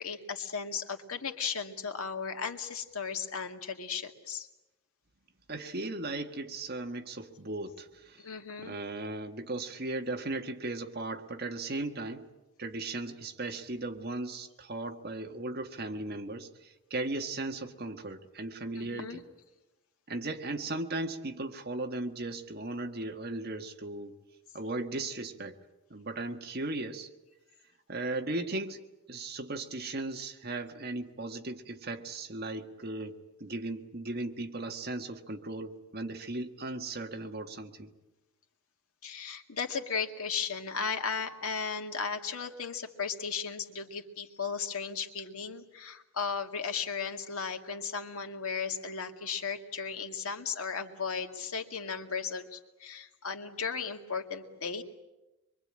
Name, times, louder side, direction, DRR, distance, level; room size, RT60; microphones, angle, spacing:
voice 1, 0.0-4.5 8.2-8.8 18.8-19.2 39.0-54.8, left 6 dB, 85° left, 4 dB, 2.2 m, -36 dB
voice 2, 5.5-8.2 8.6-12.2 12.6-19.2 20.1-24.1 24.5-25.5 25.9-27.1 27.9-28.8 29.1-37.9, right 2 dB, 45° right, 5 dB, 1.7 m, -37 dB
25.0 x 23.5 x 8.9 m, 1.0 s
head